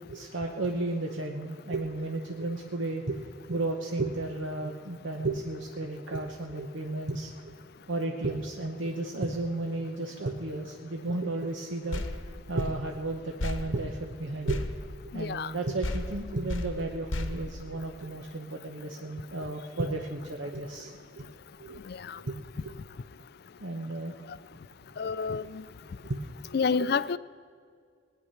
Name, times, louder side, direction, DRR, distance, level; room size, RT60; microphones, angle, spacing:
voice 1, 0.1-3.2 3.5-7.5 7.9-12.0 12.5-14.6 15.0-21.2 21.6-21.8 22.2-22.4 22.6-22.7 23.6-24.2 25.0-25.1 25.4-25.5 26.0-26.2, right 2 dB, 75° right, 2 dB, 1.0 m, -33 dB
sound 1, 11.9-15.5 15.8-18.3, left 1 dB, 85° left, 1.0 m, -36 dB
voice 2, 15.1-15.5 21.9-22.2 25.0-25.6 26.5-27.2, left 5 dB, 55° left, 17 dB, 0.4 m, -29 dB
19.0 x 9.5 x 5.7 m, 2.1 s
head